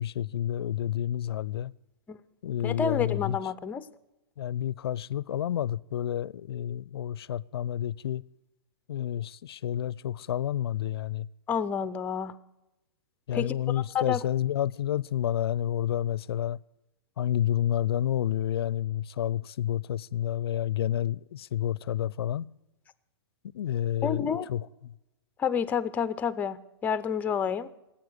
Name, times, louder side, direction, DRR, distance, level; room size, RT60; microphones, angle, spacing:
voice 1, 0.0-1.7 2.4-3.4 4.4-8.2 8.9-11.3 13.3-16.6 17.2-22.5 23.5-24.9, left 11 dB, 70° left, 0.5 m, -30 dB
voice 2, 2.6-3.8 11.5-12.3 13.3-13.5 13.9-14.2 24.0-24.5 25.4-27.7, left 7 dB, 10° left, 0.5 m, -29 dB
17.5 x 8.9 x 8.0 m
hypercardioid pair, 150°, 13 cm